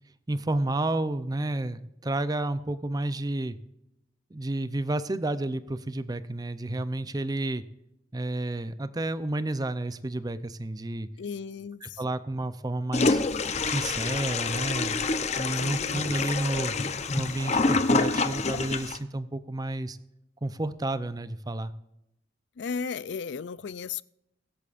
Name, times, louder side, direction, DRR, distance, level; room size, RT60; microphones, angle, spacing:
voice 1, 0.3-3.6 4.3-7.6 8.1-11.1 11.8-13.2 13.6-15.0 15.4-16.8 17.1-20.0 20.4-21.7, right 2 dB, 20° right, 13 dB, 0.6 m, -31 dB
voice 2, 11.2-12.0 15.5-16.1 22.6-24.0, left 5 dB, 75° left, 19 dB, 0.4 m, -35 dB
Toilet flush, 12.9-19.0, left 3 dB, 40° left, 0.7 m, -27 dB
23.5 x 8.5 x 2.5 m, 0.85 s
head